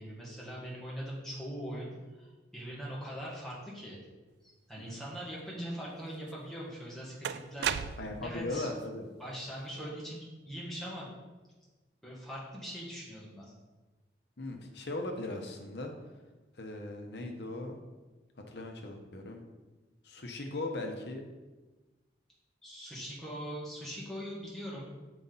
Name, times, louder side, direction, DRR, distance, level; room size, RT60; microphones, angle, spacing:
voice 1, 0.0-2.3 2.5-4.0 4.4-7.7 8.2-8.7 9.2-10.2 10.5-11.1 12.0-13.5 22.6-24.9, equal, ahead, -7 dB, 1.9 m, -41 dB
sound 1, 6.3-6.4 7.2-8.3, right 8 dB, 65° right, 0.3 m, -34 dB
voice 2, 8.0-9.1 14.4-15.9 16.6-17.8 18.5-19.4 20.0-21.2, left 2 dB, 70° left, 3 dB, 1.0 m, -38 dB
7.0 x 5.0 x 4.1 m, 1.2 s
head